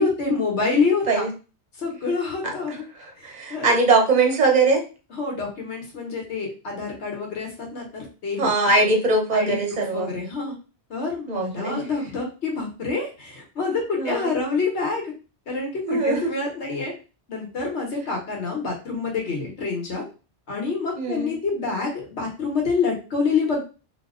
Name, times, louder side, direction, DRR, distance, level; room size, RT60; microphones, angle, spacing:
voice 1, 0.0-1.3 1.8-2.8 3.2-3.7 5.1-8.5 9.3-10.5 10.9-15.1 15.5-16.9 17.3-20.0 20.5-23.6, left 4 dB, 85° left, 0 dB, 1.3 m, -27 dB
voice 2, 2.9-4.8 8.4-10.1 11.3-11.9 14.0-14.3 15.8-16.2 21.0-21.3, right 3 dB, 45° right, 2 dB, 0.9 m, -21 dB
2.8 x 2.1 x 3.6 m, 0.33 s
omnidirectional pair, 1.1 m